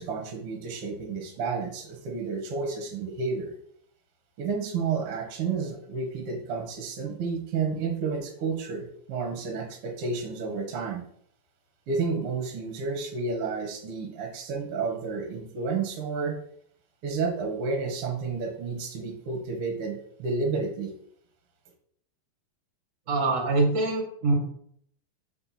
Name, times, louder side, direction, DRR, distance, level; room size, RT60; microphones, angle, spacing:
voice 1, 0.0-3.5 4.4-11.0 11.9-16.3 17.0-20.9, right 4 dB, 60° right, 3 dB, 1.6 m, -31 dB
voice 2, 23.1-24.3, right 3 dB, 35° right, -1 dB, 1.3 m, -24 dB
4.6 x 4.4 x 5.8 m, 0.65 s
omnidirectional pair, 3.9 m